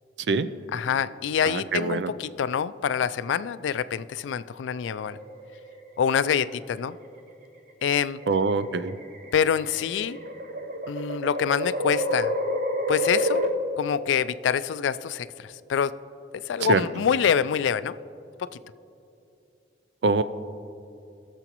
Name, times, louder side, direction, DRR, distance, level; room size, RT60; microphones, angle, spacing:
voice 1, 0.7-5.2 6.0-7.0 7.8-8.2 9.3-10.2 10.9-12.3 12.9-13.4 13.8-16.0 16.5-17.9 18.4-18.5, left 7 dB, 85° left, 15 dB, 0.3 m, -26 dB
voice 2, 1.4-2.1 8.3-8.9 16.7-16.8 20.0-20.2, right 4 dB, 70° right, 13 dB, 0.4 m, -24 dB
sound 1, 4.9-5.7 6.9-7.3 8.2-13.5, equal, 45° right, 0.8 m, -29 dB
20.0 x 6.9 x 3.0 m, 2.7 s
head